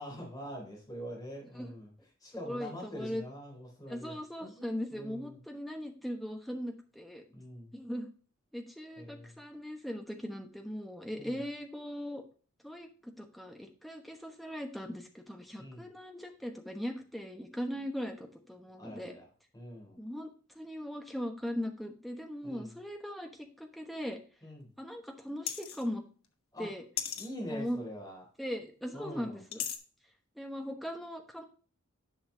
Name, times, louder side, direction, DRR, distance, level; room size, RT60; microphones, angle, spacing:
voice 1, 0.0-1.9 2.2-5.4 7.3-7.7 9.0-9.3 11.2-11.4 15.6-15.9 18.8-19.3 19.5-20.0 22.4-22.7 24.4-24.7 26.5-26.7 27.2-28.2 28.9-29.4, equal, 15° left, -2 dB, 3.5 m, -44 dB
voice 2, 2.4-3.2 3.9-7.2 7.7-8.1 8.5-12.2 12.6-19.2 20.0-20.3 20.5-24.2 24.8-26.0 26.6-26.8 27.5-27.8 28.4-29.6 30.4-31.5, equal, ahead, 3 dB, 1.0 m, -39 dB
sound 1, 25.5-25.9 27.0-27.3 29.5-29.8, left 9 dB, 75° left, 1.1 m, -35 dB
10.5 x 5.7 x 2.8 m, 0.39 s
head